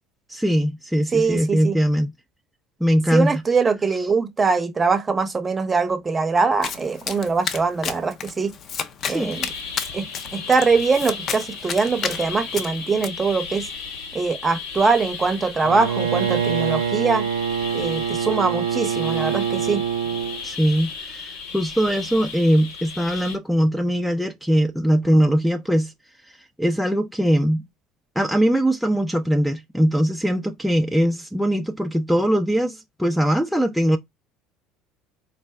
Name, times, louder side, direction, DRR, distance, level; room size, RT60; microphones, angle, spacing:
voice 1, 0.3-2.1 2.8-3.3 9.1-9.4 20.4-25.9 26.6-27.6 28.2-34.0, equal, ahead, 0.5 m, -21 dB
voice 2, 1.1-1.8 3.1-8.6 9.1-9.5 9.9-10.0 10.3-13.7 14.1-17.3 17.7-19.8, right 4 dB, 25° right, 0.8 m, -22 dB
Domestic sounds home sounds, 6.6-13.1, left 7 dB, 50° left, 0.6 m, -32 dB
sound 1, 9.0-23.4, left 5 dB, 75° left, 1.1 m, -35 dB
Bowed string instrument, 15.6-20.4, right 8 dB, 80° right, 0.4 m, -25 dB
4.0 x 2.1 x 3.4 m
hypercardioid pair, 75°, 0 cm